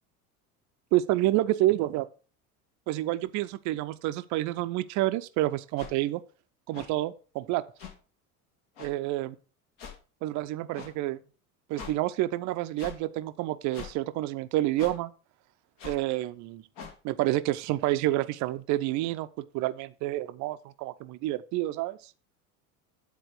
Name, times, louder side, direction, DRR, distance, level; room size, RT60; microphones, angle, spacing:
voice 1, 0.9-2.1 2.9-6.2 6.7-7.6 8.8-9.3 10.2-11.2 11.7-15.1 15.8-16.6 17.0-19.3 19.5-22.0, right 16 dB, 40° right, 0.7 m, -28 dB
sound 1, 5.8-5.9 6.7-6.9 7.8-7.9 8.8-8.9 9.8-10.0 10.7-10.9 11.7-11.9 12.8-13.0 13.7-13.9 14.8-15.0 15.8-16.0 16.8-17.0, left 6 dB, 50° left, 2.2 m, -42 dB
10.5 x 4.2 x 6.1 m
figure-of-eight pair, 70°, 45 cm